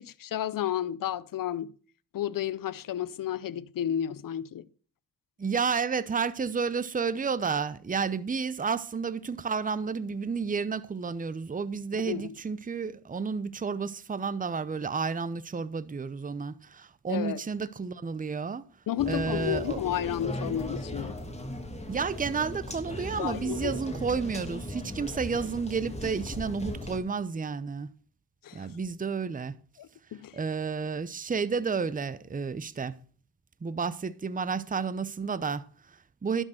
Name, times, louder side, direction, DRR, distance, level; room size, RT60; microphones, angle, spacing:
voice 1, 0.0-1.7 2.1-4.7 12.0-12.3 17.1-17.4 18.9-21.2 23.1-23.7 28.4-28.7 29.8-30.4, left 10 dB, 65° left, 0.7 m, -32 dB
voice 2, 5.4-18.6 19.1-19.8 21.9-27.9 28.5-29.6 30.3-33.0 33.6-36.4, right 5 dB, 25° right, 0.7 m, -31 dB
sound 1, 19.0-27.0, equal, 20° left, 2.8 m, -37 dB
11.5 x 6.4 x 6.4 m
cardioid pair, 70°, 35 cm